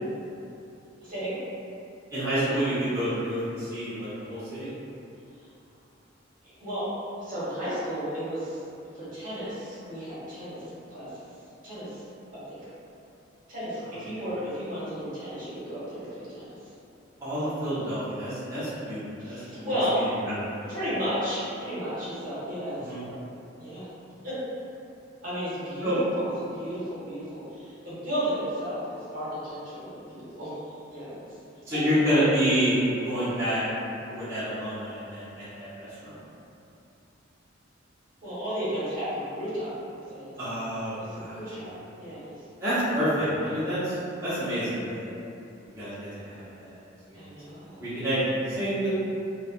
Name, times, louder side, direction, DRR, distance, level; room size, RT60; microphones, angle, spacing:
voice 1, 1.0-1.4 6.4-6.9 7.2-8.6 8.9-10.6 10.9-11.3 11.6-12.0 12.3-12.6 13.5-16.6 19.2-20.0 20.7-23.2 23.6-23.9 24.2-24.4 25.2-31.2 31.7-32.2 38.2-39.7 40.1-40.3 41.0-42.3 47.1-47.9, equal, 45° right, -11 dB, 1.1 m, -33 dB
voice 2, 2.1-4.7 17.2-19.8 20.3-20.7 22.8-23.0 25.8-26.0 31.7-33.6 34.1-36.2 40.4-41.6 42.6-45.1 45.7-46.7 47.1-47.2 47.8-48.9, equal, 15° right, -15 dB, 0.8 m, -28 dB
3.2 x 2.1 x 2.5 m, 2.7 s
head